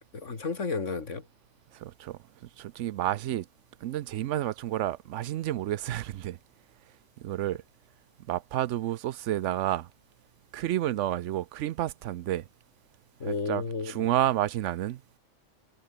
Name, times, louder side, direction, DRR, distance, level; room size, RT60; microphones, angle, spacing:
voice 1, 0.1-1.3 13.2-14.1, left 4 dB, 75° left, 2.7 m, -32 dB
voice 2, 1.7-3.5 3.8-6.4 7.2-7.6 8.3-9.9 10.5-12.5 13.2-15.0, right 13 dB, 75° right, 0.9 m, -30 dB
omnidirectional pair, 1.3 m